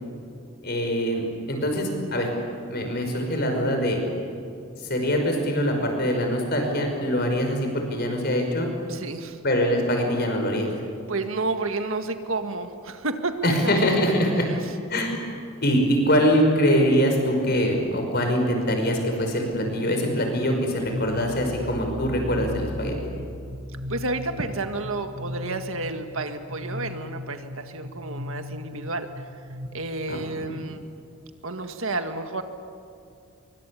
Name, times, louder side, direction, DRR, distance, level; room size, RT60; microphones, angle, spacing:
voice 1, 0.6-1.2 1.5-2.3 2.7-4.0 4.8-8.7 9.4-10.7 13.4-14.5 14.9-15.2 15.6-23.0 30.1-30.6, equal, 45° left, 3 dB, 5.6 m, -23 dB
voice 2, 8.9-9.4 11.1-13.8 14.5-14.6 23.9-29.3 29.7-30.9 31.4-32.4, right 3 dB, 70° right, 6 dB, 1.9 m, -30 dB
sound 1, 19.5-29.7, left 1 dB, 45° right, 8.0 m, -37 dB
25.0 x 23.5 x 8.6 m, 2.5 s
head